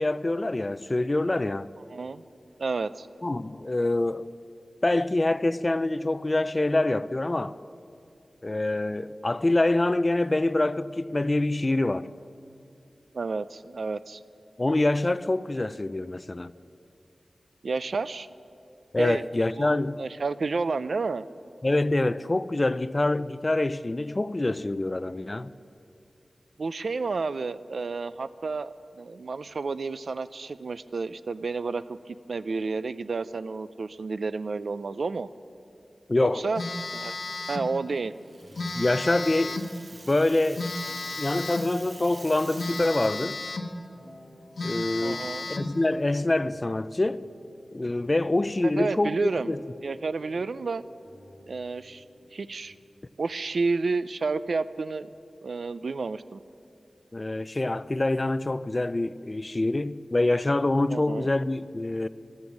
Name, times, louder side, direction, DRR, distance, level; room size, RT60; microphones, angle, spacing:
voice 1, 0.0-1.7 3.2-4.3 4.8-7.6 8.4-12.1 14.6-16.5 18.9-20.0 21.6-25.5 36.1-36.5 38.7-39.7 40.1-40.7 41.2-43.4 44.6-47.2 47.7-49.6 57.1-62.1, left 2 dB, 30° left, 0.4 m, -25 dB
voice 2, 1.9-2.2 2.6-3.1 13.1-14.2 17.6-18.3 19.0-19.2 19.6-21.2 26.6-35.3 36.2-36.6 36.9-37.2 37.5-38.1 45.0-45.5 48.6-49.5 49.8-50.8 51.5-52.0 52.3-52.7 53.2-55.1 55.4-56.4 60.9-61.3, right 4 dB, 75° right, 0.4 m, -30 dB
Telephone, 36.5-37.7 38.5-39.7 40.6-41.7 42.6-43.7 44.2-44.3 44.6-45.7, left 2 dB, 80° left, 1.2 m, -34 dB
sound 1, 37.8-52.8, left 1 dB, 30° right, 3.3 m, -54 dB
Rattle (instrument), 38.1-43.4, right 2 dB, 45° right, 0.8 m, -47 dB
14.0 x 13.0 x 7.2 m
wide cardioid pair, 85°, 0 cm